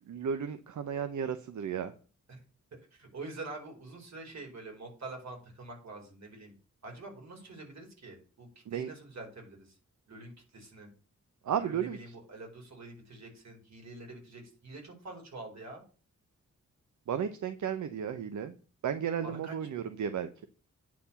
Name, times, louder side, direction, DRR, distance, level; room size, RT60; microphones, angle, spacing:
voice 1, 0.1-1.9 8.7-8.9 11.4-12.0 17.1-18.5 18.8-20.3, right 8 dB, 80° right, 10 dB, 0.9 m, -33 dB
voice 2, 2.9-6.5 6.8-9.8 10.1-10.9 11.6-15.8 19.2-19.5, right 2 dB, 65° right, 1 dB, 4.4 m, -46 dB
9.4 x 4.7 x 6.9 m, 0.37 s
wide cardioid pair, 95°, 29 cm